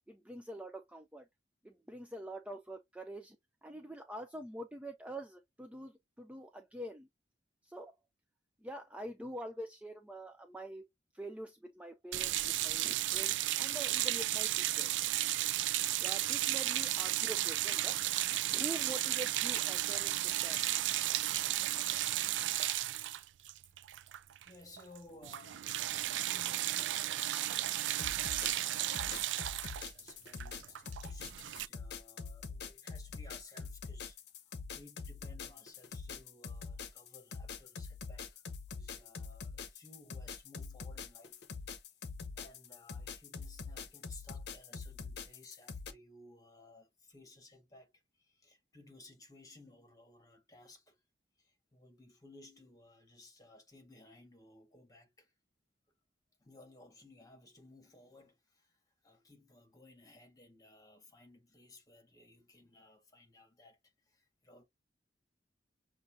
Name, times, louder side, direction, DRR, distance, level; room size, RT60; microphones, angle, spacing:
voice 1, 0.1-1.3 1.6-3.4 3.6-7.1 7.6-7.9 8.6-10.8 11.1-14.9 16.0-18.0 18.5-20.8, right 1 dB, 5° right, 0.4 m, -45 dB
sound 1, 12.1-24.5 24.8-25.0 25.2-31.7, right 14 dB, 80° right, 0.3 m, -34 dB
voice 2, 24.4-25.9 26.3-29.2 29.5-34.2 34.4-38.4 38.7-41.4 42.3-47.9 48.2-51.0 51.4-55.3 56.4-58.7 59.0-64.6, left 2 dB, 20° left, 1.5 m, -58 dB
sound 2, 27.9-45.9, left 5 dB, 65° left, 0.8 m, -44 dB
6.6 x 2.6 x 2.6 m
head